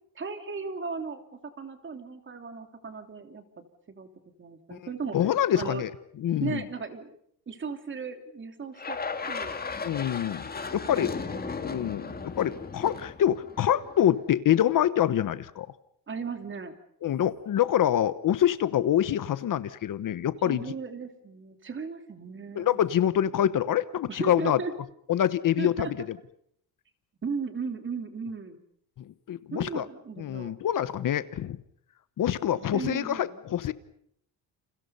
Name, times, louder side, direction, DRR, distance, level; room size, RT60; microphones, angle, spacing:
voice 1, 0.1-4.1 4.4-5.2 5.5-5.9 6.4-7.1 7.5-9.0 9.3-9.6 11.0-12.6 16.1-16.7 20.4-22.9 24.1-24.7 25.6-25.9 27.2-28.6 29.5-30.5 32.5-33.4, right 5 dB, 30° right, 7 dB, 3.0 m, -37 dB
voice 2, 5.1-5.9 6.2-6.6 9.8-10.4 10.7-11.1 11.6-12.1 12.4-15.7 17.0-20.6 22.5-24.6 25.1-26.2 29.0-29.9 30.2-31.6 32.2-33.7, left 11 dB, 50° left, 14 dB, 1.1 m, -26 dB
sound 1, 8.8-14.1, left 4 dB, 25° left, 2.0 m, -36 dB
29.5 x 28.5 x 5.6 m, 0.68 s
cardioid pair, 150°, 40 cm